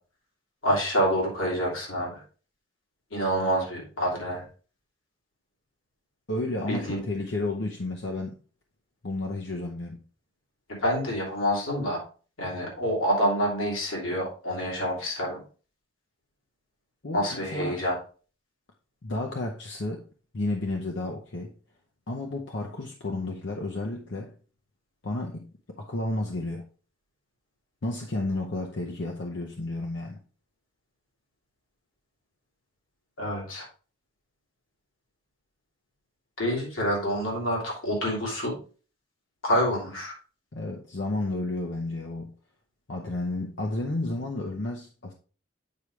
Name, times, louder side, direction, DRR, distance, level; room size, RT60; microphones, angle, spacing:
voice 1, 0.6-2.2 3.1-4.4 6.7-7.0 10.7-12.0 12.4-15.4 17.1-18.0 33.2-33.7 36.4-38.6 39.4-40.1, equal, 85° left, 2.9 m, -27 dB
voice 2, 6.3-8.3 9.0-10.0 17.0-17.8 19.0-20.1 20.3-21.5 22.1-24.4 25.0-25.5 25.8-26.7 27.8-30.2 40.5-42.3 42.9-45.1, left 2 dB, 60° left, 0.7 m, -32 dB
8.6 x 4.8 x 3.2 m
head